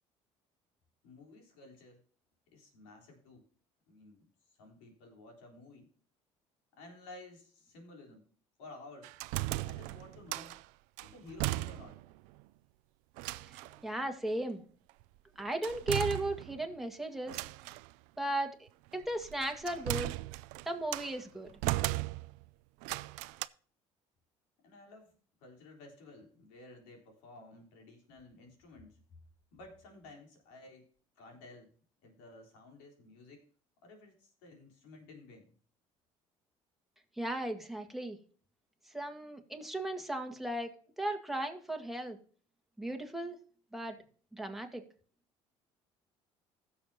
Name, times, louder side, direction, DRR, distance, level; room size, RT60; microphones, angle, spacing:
voice 1, 1.0-2.0 2.5-3.5 3.9-5.9 6.8-8.3 8.6-9.2 9.6-10.6 11.0-12.0 24.6-29.0 29.5-30.9 31.2-31.7 32.0-33.4 33.8-35.5, left 2 dB, 85° left, 2 dB, 3.7 m, -54 dB
sound 1, 9.0-10.6 11.0-12.1 12.4-12.5 13.2-13.8 15.6-16.7 17.3-17.9 19.0-21.2 21.6-22.5 22.8-23.5, right 20 dB, 85° right, 0.4 m, -37 dB
voice 2, 13.8-14.6 15.4-17.4 18.2-20.1 20.6-21.5 37.2-38.2 38.9-42.2 42.8-43.4 43.7-44.0 44.3-44.8, right 1 dB, ahead, 3 dB, 1.9 m, -36 dB
16.5 x 7.1 x 2.8 m, 0.43 s
supercardioid pair, 85°, 13 cm